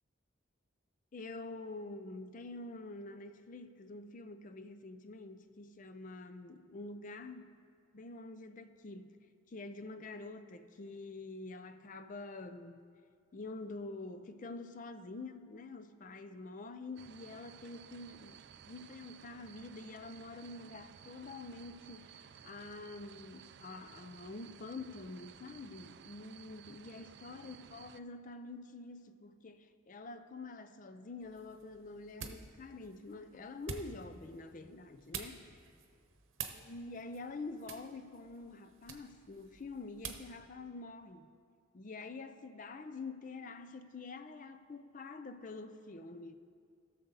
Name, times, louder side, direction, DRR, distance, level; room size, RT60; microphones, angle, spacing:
voice 1, 1.1-7.5 7.9-9.2 9.5-12.8 13.3-18.4 18.6-35.4 36.5-41.3 41.7-46.3, left 3 dB, 40° left, 0.4 m, -47 dB
sound 1, 17.0-28.0, right 8 dB, 55° right, 0.3 m, -56 dB
sound 2, 31.2-40.4, right 6 dB, 75° right, 0.9 m, -49 dB
16.5 x 6.8 x 4.0 m
head